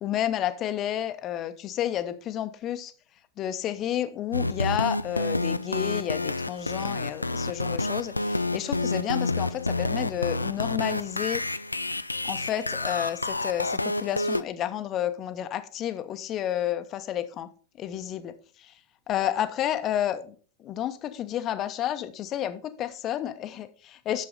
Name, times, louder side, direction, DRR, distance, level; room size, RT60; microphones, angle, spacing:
voice 1, 0.0-2.9 3.4-11.4 12.2-17.5 17.8-18.7 19.1-20.3 20.6-24.3, left 11 dB, 35° left, 10 dB, 1.0 m, -31 dB
sound 1, 4.3-14.4, left 2 dB, 85° left, 0.4 m, -29 dB
9.9 x 6.8 x 3.9 m, 0.40 s
figure-of-eight pair, 90°, 0 cm